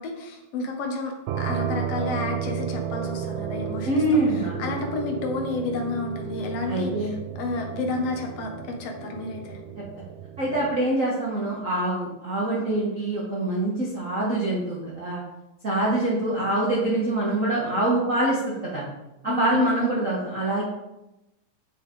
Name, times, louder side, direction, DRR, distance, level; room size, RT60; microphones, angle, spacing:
voice 1, 0.0-9.6 19.2-20.0, left 3 dB, 65° left, 2 dB, 1.6 m, -31 dB
sound 1, 1.3-10.8, right 8 dB, 90° right, 2.2 m, -33 dB
voice 2, 3.8-4.7 6.7-7.1 10.4-15.2 15.6-18.8 19.2-20.6, right 1 dB, 75° right, -6 dB, 0.7 m, -25 dB
8.4 x 4.6 x 3.7 m, 0.92 s
omnidirectional pair, 3.8 m